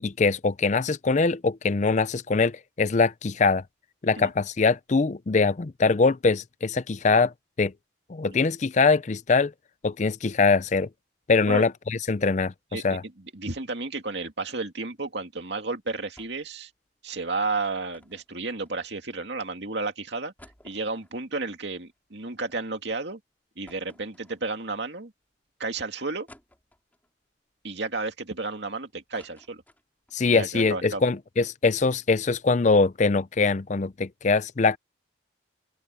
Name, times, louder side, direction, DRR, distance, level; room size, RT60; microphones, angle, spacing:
voice 1, 0.0-3.6 4.0-7.3 7.6-7.7 8.1-9.5 9.8-10.9 11.3-13.0 30.1-34.8, left 4 dB, 40° left, 0.5 m, -23 dB
voice 2, 12.7-16.7 17.0-20.3 20.6-23.2 23.6-25.1 25.6-26.3 27.6-29.6 30.3-31.0, right 3 dB, 65° right, 2.6 m, -32 dB
sound 1, 16.2-16.6 16.9-17.0 17.9-19.2 19.7-19.8 20.1-22.6 23.0-23.1 23.7-24.8 25.3-25.4 26.3-27.1 27.7-28.6 28.9-30.2 30.6-30.7 30.9-31.2, left 1 dB, 10° left, 4.8 m, -56 dB
open air
head